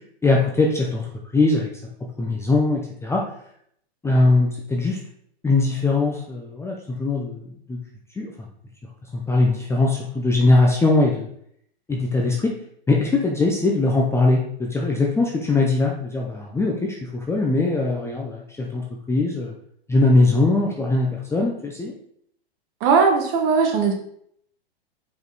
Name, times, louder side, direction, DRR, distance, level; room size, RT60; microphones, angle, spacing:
voice 1, 0.2-1.1 1.3-1.7 2.2-3.2 4.0-5.0 5.4-7.8 8.2-8.3 9.1-11.3 11.9-12.5 12.9-19.5 19.9-21.9, left 2 dB, 10° left, -1 dB, 0.7 m, -21 dB
voice 2, 22.8-23.9, right 5 dB, 40° right, 3 dB, 1.5 m, -18 dB
5.2 x 5.1 x 4.0 m, 0.67 s
hypercardioid pair, 125°, 33 cm